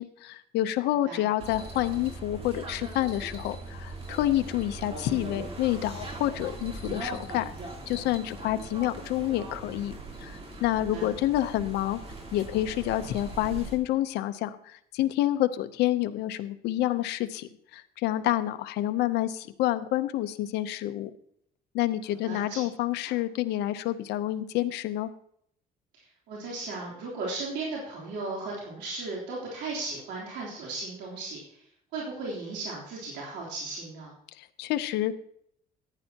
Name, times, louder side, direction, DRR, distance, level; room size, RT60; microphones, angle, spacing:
voice 1, 0.0-7.5 7.9-12.0 12.3-21.1 21.7-25.1 34.4-35.1, left 14 dB, 80° left, 10 dB, 0.7 m, -28 dB
sound 1, 1.4-13.8, right 2 dB, 35° right, 3.1 m, -40 dB
voice 2, 22.2-22.6 26.3-31.4 31.9-34.1, right 3 dB, 90° right, -4 dB, 3.4 m, -36 dB
15.0 x 9.9 x 2.9 m, 0.68 s
cardioid pair, 110°, 17 cm